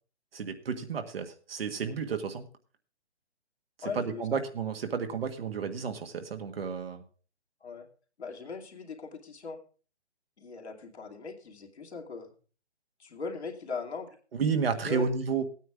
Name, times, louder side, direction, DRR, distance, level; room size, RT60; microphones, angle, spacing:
voice 1, 0.3-2.4 4.0-7.0 14.4-15.4, right 6 dB, 60° right, 7 dB, 1.7 m, -31 dB
voice 2, 3.8-4.4 7.6-7.9 8.2-9.6 10.4-12.3 13.0-14.2 14.8-15.2, left 4 dB, 75° left, 1 dB, 2.7 m, -39 dB
15.5 x 9.3 x 3.6 m, 0.38 s
hypercardioid pair, 150°, 33 cm